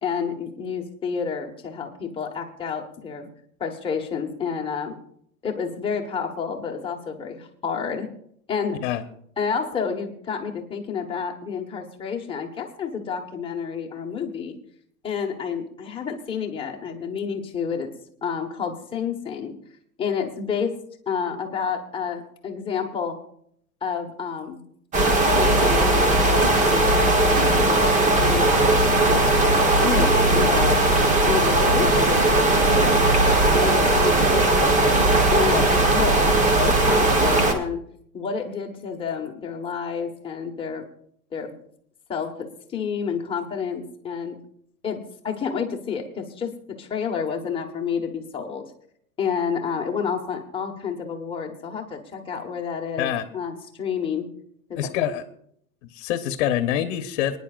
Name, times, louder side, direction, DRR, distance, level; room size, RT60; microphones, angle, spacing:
voice 1, 0.0-3.3 3.6-5.0 5.4-8.1 8.5-8.8 9.4-14.6 15.0-17.9 18.2-19.6 20.0-20.7 21.1-23.2 23.8-24.6 25.1-29.0 29.8-30.8 31.3-33.0 33.5-36.2 36.6-37.8 38.1-40.9 41.3-41.5 42.1-44.4 44.8-46.5 46.8-48.7 49.2-54.3 54.7-54.9, left 6 dB, 10° left, 1 dB, 1.4 m, -29 dB
sound 1, 24.9-37.5, right 2 dB, 15° right, 1.2 m, -18 dB
voice 2, 54.8-55.2 55.9-57.4, left 11 dB, 50° left, 8 dB, 1.2 m, -25 dB
29.5 x 10.0 x 2.5 m, 0.68 s
supercardioid pair, 150°, 43 cm